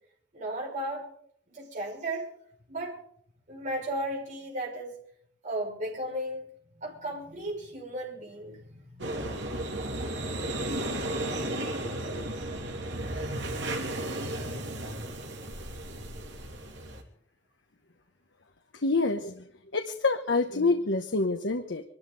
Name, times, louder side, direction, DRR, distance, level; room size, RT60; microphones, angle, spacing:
voice 1, 0.3-1.1 1.5-2.3 2.7-3.0 3.5-4.9 5.4-6.5 6.8-9.5, right 1 dB, 45° right, -3 dB, 5.9 m, -35 dB
sound 1, 9.0-17.0, right 1 dB, 80° right, 3.0 m, -34 dB
voice 2, 18.8-19.4 19.7-21.8, left 3 dB, 90° left, 6 dB, 1.1 m, -27 dB
25.0 x 13.0 x 4.0 m, 0.65 s
head